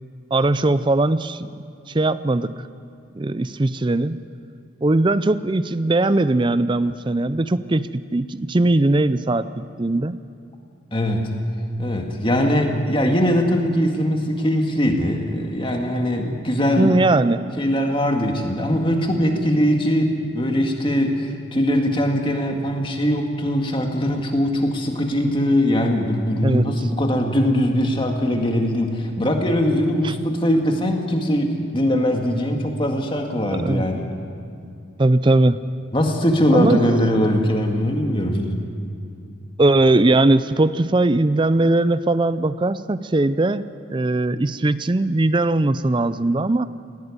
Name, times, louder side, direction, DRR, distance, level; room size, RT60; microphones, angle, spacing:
voice 1, 0.3-1.5 1.9-2.7 3.1-4.2 4.8-10.2 16.8-17.4 26.4-26.9 30.0-30.2 33.5-33.9 35.0-35.6 36.5-36.8 39.6-43.6 43.9-46.7, right 2 dB, 25° right, 14 dB, 0.4 m, -19 dB
voice 2, 10.9-11.3 11.8-16.9 17.6-34.1 35.9-38.6, equal, 25° left, 3 dB, 2.0 m, -21 dB
19.0 x 17.0 x 9.8 m, 2.5 s
head